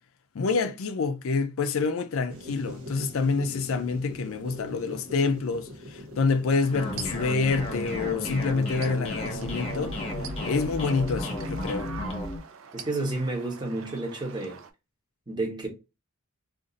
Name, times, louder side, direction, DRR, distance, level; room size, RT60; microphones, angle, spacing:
voice 1, 0.3-10.0 10.4-11.9, left 4 dB, 70° left, 0.4 m, -27 dB
sound 1, 2.3-12.3, left 1 dB, 85° right, 0.8 m, -44 dB
sound 2, 6.5-14.7, right 7 dB, 70° right, 0.5 m, -45 dB
sound 3, 6.7-12.4, left 1 dB, 30° left, 0.8 m, -33 dB
voice 2, 12.7-14.6 15.3-15.7, right 2 dB, 20° right, 0.9 m, -30 dB
2.5 x 2.4 x 3.9 m
head